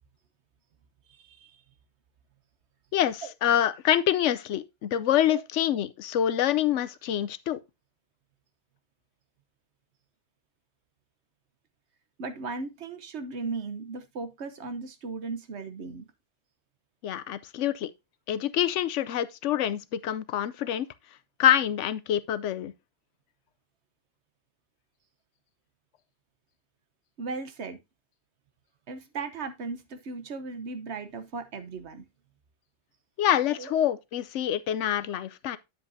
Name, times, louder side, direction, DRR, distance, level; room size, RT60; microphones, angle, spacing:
voice 1, 1.2-1.5 5.3-5.4 12.2-16.1 27.2-27.8 28.9-32.0 33.6-33.7, right 4 dB, 65° right, 1.2 m, -37 dB
voice 2, 2.9-7.6 17.0-17.9 18.3-20.9 21.4-22.7 33.2-35.6, left 11 dB, 80° left, 0.9 m, -26 dB
9.1 x 7.7 x 2.7 m
omnidirectional pair, 1.2 m